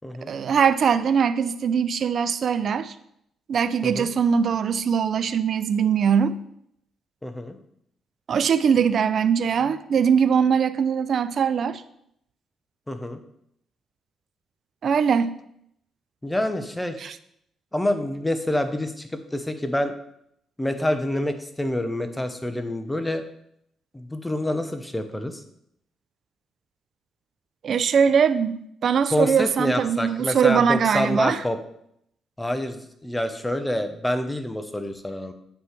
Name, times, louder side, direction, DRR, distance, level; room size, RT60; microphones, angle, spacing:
voice 1, 0.3-2.9 3.5-6.4 8.3-11.8 14.8-15.3 17.0-17.1 27.6-31.4, right 7 dB, 55° right, 13 dB, 0.4 m, -21 dB
voice 2, 7.2-7.6 12.9-13.2 16.2-17.0 17.7-19.9 20.6-23.2 23.9-25.4 29.1-31.6 32.4-35.3, left 1 dB, 10° left, 8 dB, 0.8 m, -27 dB
8.3 x 3.2 x 5.8 m, 0.74 s
cardioid pair, 90°, 0 cm